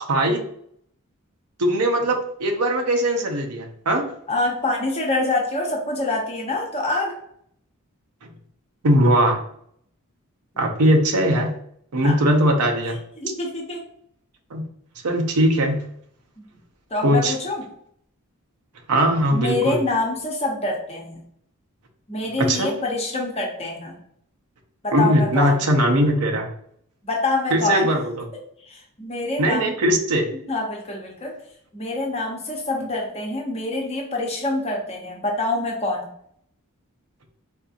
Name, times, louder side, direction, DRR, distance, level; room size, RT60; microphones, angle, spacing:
voice 1, 0.1-0.4 1.6-4.0 8.2-8.3 8.8-9.4 10.6-11.5 11.9-13.0 14.5-14.6 15.0-15.8 17.0-17.3 18.9-19.8 22.4-22.7 24.9-26.5 27.5-28.1 29.4-30.3, right 1 dB, 90° right, 2 dB, 0.7 m, -20 dB
voice 2, 4.3-7.1 10.5-10.7 12.0-12.2 13.2-13.8 16.4-16.5 16.9-17.6 19.3-21.2 22.1-24.0 24.8-25.6 27.0-27.9 28.6-29.8 30.5-31.3 31.7-36.1, left 2 dB, 30° left, -1 dB, 0.8 m, -26 dB
4.2 x 2.6 x 2.5 m, 0.67 s
head